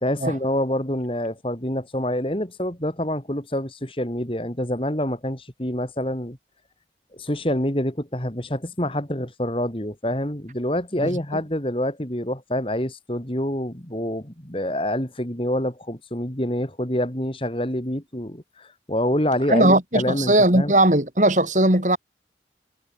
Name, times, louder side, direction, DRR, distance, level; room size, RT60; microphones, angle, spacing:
voice 1, 0.0-6.4 7.1-20.7, left 1 dB, 30° left, 3.1 m, -26 dB
voice 2, 19.5-22.0, right 1 dB, 45° right, 3.4 m, -18 dB
head